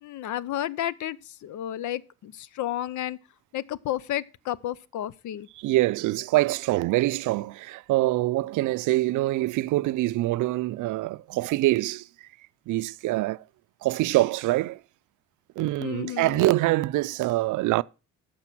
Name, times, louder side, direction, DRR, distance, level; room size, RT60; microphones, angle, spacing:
voice 1, 0.0-3.2 3.5-5.5 15.8-16.5, left 12 dB, 75° left, 0.7 m, -32 dB
voice 2, 5.6-12.0 12.7-13.4 13.8-14.8 15.6-17.8, right 18 dB, 80° right, 0.5 m, -24 dB
11.5 x 6.6 x 6.1 m
cardioid pair, 90°, 30 cm